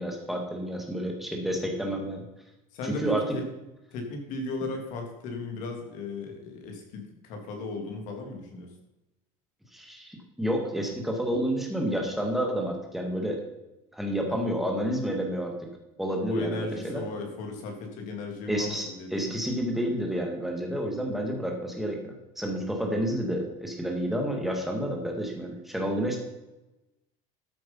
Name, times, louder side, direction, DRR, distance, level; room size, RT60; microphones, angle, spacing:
voice 1, 0.0-2.2 2.8-3.3 9.7-13.4 13.9-15.5 16.0-17.0 18.5-26.2, equal, ahead, 1 dB, 2.0 m, -30 dB
voice 2, 2.7-3.0 3.3-3.4 3.9-8.7 14.3-14.4 16.3-19.4, left 3 dB, 50° left, 3 dB, 3.1 m, -36 dB
13.5 x 8.0 x 5.6 m, 0.99 s
cardioid pair, 180°, 16 cm